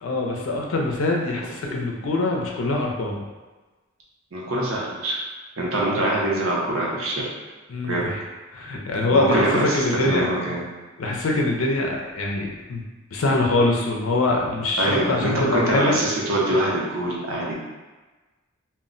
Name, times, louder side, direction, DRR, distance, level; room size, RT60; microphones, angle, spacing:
voice 1, 0.0-3.2 7.7-8.2 8.5-10.2 11.0-12.8 13.1-16.0, left 2 dB, 90° left, 0 dB, 0.5 m, -23 dB
voice 2, 4.3-5.2 5.6-7.3 7.8-8.1 9.1-10.6 14.8-17.5, right 1 dB, 90° right, -4 dB, 0.7 m, -24 dB
2.2 x 2.1 x 3.7 m, 1.2 s
head